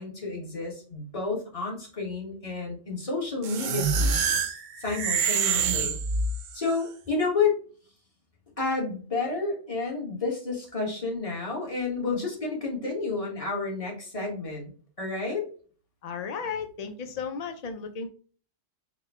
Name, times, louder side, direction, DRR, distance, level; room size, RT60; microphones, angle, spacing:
voice 1, 0.0-4.3 4.8-6.0 6.5-7.6 8.6-14.7 15.0-15.5, left 4 dB, 30° left, -1 dB, 1.3 m, -30 dB
sound 1, 3.4-6.7, right 5 dB, 60° right, 0.5 m, -26 dB
voice 2, 16.0-18.1, left 5 dB, 80° left, 7 dB, 0.3 m, -34 dB
4.9 x 2.2 x 3.4 m, 0.42 s
omnidirectional pair, 1.2 m